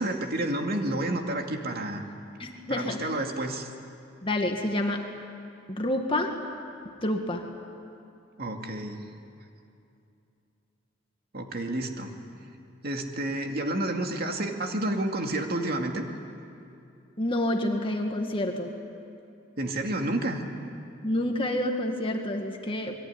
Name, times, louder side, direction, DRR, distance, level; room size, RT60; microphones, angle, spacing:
voice 1, 0.0-2.0 2.7-3.7 8.4-9.1 11.3-12.1 12.8-16.0 19.6-20.4, right 1 dB, 55° right, 3 dB, 2.3 m, -30 dB
voice 2, 2.4-3.0 4.2-5.0 5.7-6.3 7.0-7.4 17.2-18.7 21.0-23.0, left 1 dB, 25° left, 3 dB, 1.9 m, -28 dB
27.0 x 22.0 x 9.8 m, 2.6 s
head